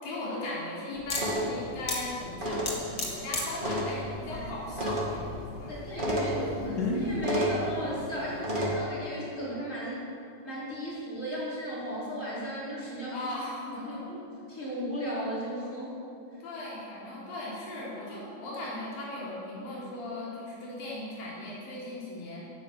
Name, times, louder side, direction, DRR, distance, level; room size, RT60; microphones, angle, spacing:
voice 1, 0.0-6.4 13.1-14.0 16.4-22.4, left 1 dB, 55° left, -6 dB, 5.6 m, -38 dB
sound 1, 1.0-7.3, left 2 dB, 35° left, 1.8 m, -36 dB
sound 2, 1.1-8.7, equal, 60° right, 0.5 m, -33 dB
voice 2, 5.7-10.0 10.4-13.3 13.7-14.2 14.5-15.9, equal, 15° left, -7 dB, 4.5 m, -35 dB
17.5 x 9.3 x 7.7 m, 2.7 s
omnidirectional pair, 5.1 m